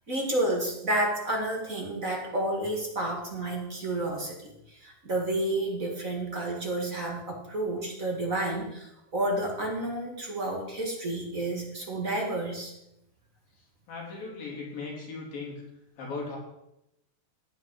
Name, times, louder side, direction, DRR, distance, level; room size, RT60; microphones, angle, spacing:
voice 1, 0.1-4.3 4.8-12.7, right 1 dB, 30° right, 0 dB, 1.6 m, -30 dB
voice 2, 13.9-15.6 16.0-16.4, left 4 dB, 85° left, -3 dB, 5.4 m, -37 dB
15.5 x 9.6 x 4.8 m, 0.85 s
omnidirectional pair, 4.0 m